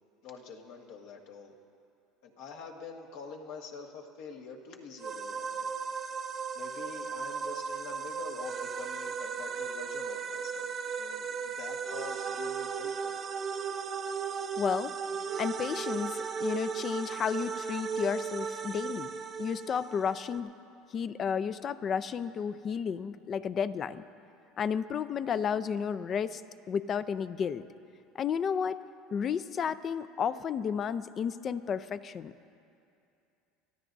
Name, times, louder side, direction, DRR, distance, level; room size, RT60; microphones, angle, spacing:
voice 1, 0.2-1.5 2.2-5.7 6.5-10.7 11.0-13.2, left 5 dB, 70° left, 2 dB, 1.6 m, -46 dB
sound 1, 5.0-20.4, right 6 dB, 35° right, 0.7 m, -36 dB
voice 2, 14.6-14.9 15.4-19.1 19.4-20.5 20.9-24.0 24.6-26.4 26.7-27.6 28.1-28.8 29.1-32.3, left 7 dB, 40° left, 14 dB, 0.5 m, -32 dB
24.5 x 14.0 x 2.7 m, 2.6 s
supercardioid pair, 105°, 0 cm